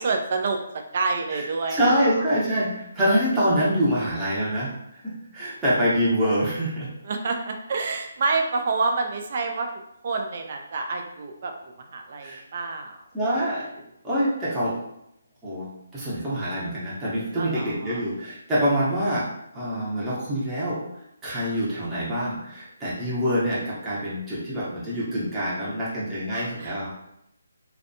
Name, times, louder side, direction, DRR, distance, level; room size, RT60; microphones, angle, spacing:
voice 1, 0.0-2.0 7.0-9.7 10.0-11.5 11.9-13.0 17.4-18.0 26.3-26.9, right 3 dB, 50° right, 4 dB, 0.3 m, -28 dB
voice 2, 1.7-4.7 5.3-6.9 12.2-12.4 13.1-13.6 14.0-14.8 15.4-15.7 15.9-19.2 19.5-20.8 21.2-26.9, equal, 10° right, -10 dB, 0.7 m, -25 dB
2.5 x 2.2 x 2.6 m, 0.79 s
figure-of-eight pair, 145°, 0 cm